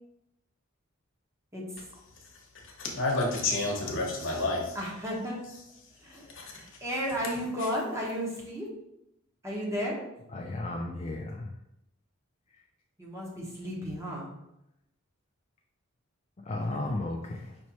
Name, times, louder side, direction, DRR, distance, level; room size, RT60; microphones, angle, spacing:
voice 1, 2.6-4.8 6.1-6.6, left 2 dB, 65° left, 1.0 m, -30 dB
voice 2, 4.7-5.4 6.0-8.7 9.4-10.0 13.0-14.3 16.7-17.0, equal, 15° right, 1.1 m, -34 dB
voice 3, 10.3-11.5 16.4-17.6, left 2 dB, 30° left, 0.4 m, -34 dB
5.3 x 3.2 x 3.0 m
head